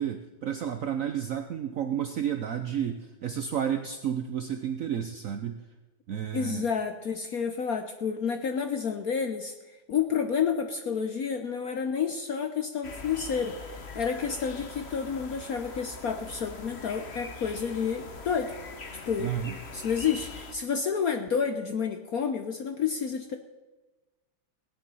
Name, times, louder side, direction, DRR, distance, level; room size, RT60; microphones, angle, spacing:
voice 1, 0.0-5.6 6.1-6.7 19.2-19.5, right 9 dB, 70° right, 7 dB, 0.7 m, -31 dB
voice 2, 6.3-9.5 9.9-18.5 19.1-19.3 19.7-23.4, left 6 dB, 60° left, 6 dB, 1.0 m, -30 dB
sound 1, 12.8-20.5, left 3 dB, 35° left, 1.2 m, -42 dB
17.0 x 10.5 x 5.5 m, 1.2 s
omnidirectional pair, 2.4 m